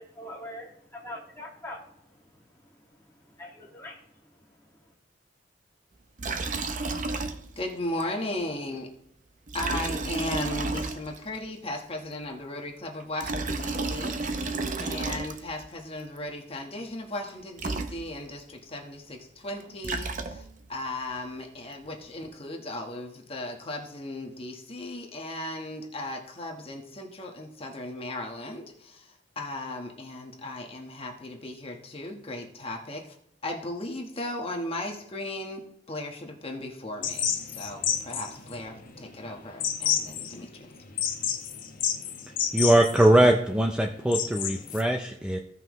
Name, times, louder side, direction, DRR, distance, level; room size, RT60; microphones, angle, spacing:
voice 1, 0.0-4.9, left 1 dB, 15° left, -2 dB, 1.9 m, -45 dB
Liquid, 6.2-7.7 8.0-8.1 9.5-11.4 13.0-15.7 17.3-17.4 17.6-18.4 19.6-20.7, right 3 dB, 45° right, 0.7 m, -32 dB
voice 2, 7.6-8.9 9.5-14.5 14.8-33.1 33.4-35.6 35.9-40.7, left 1 dB, 30° left, 2 dB, 1.2 m, -36 dB
sound 1, 37.0-44.8, left 8 dB, 50° left, 1.0 m, -31 dB
voice 3, 42.5-45.4, right 1 dB, 5° right, 3 dB, 0.5 m, -21 dB
15.5 x 5.6 x 3.1 m, 0.72 s
head